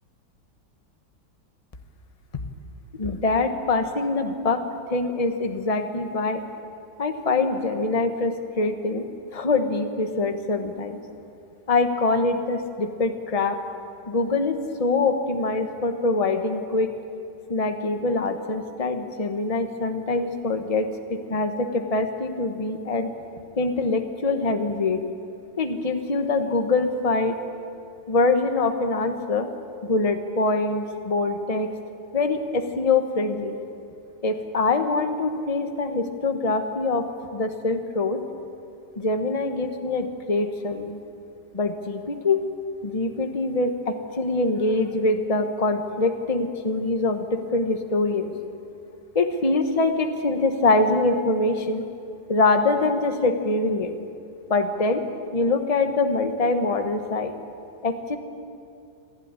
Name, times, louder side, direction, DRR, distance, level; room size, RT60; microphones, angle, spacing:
voice 1, 3.0-4.6 4.9-6.4 7.0-9.1 9.3-11.0 11.7-13.6 14.1-16.9 17.5-23.1 23.6-25.0 25.6-27.4 28.1-29.5 29.8-31.7 32.1-33.6 34.2-38.2 39.0-41.0 41.5-42.4 42.8-48.3 49.1-51.8 52.3-53.9 54.5-55.0 55.3-57.3 57.8-58.2, left 3 dB, 25° left, 6 dB, 1.1 m, -24 dB
27.5 x 12.0 x 9.8 m, 2.5 s
omnidirectional pair, 1.9 m